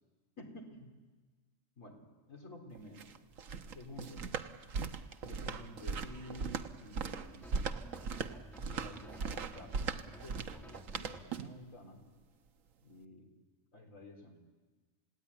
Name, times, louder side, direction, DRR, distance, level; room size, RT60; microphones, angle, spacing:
voice 1, 0.4-0.9 1.8-2.0 2.3-3.1 3.7-4.2 5.2-7.5 8.6-12.0 12.8-13.3 13.7-14.4, left 1 dB, 80° left, 2 dB, 4.4 m, -51 dB
sound 1, 2.8-11.6, right 5 dB, 85° right, 1.5 m, -39 dB
sound 2, 5.7-11.2, equal, ahead, 1.1 m, -54 dB
28.5 x 17.5 x 9.9 m, 1.3 s
omnidirectional pair, 1.4 m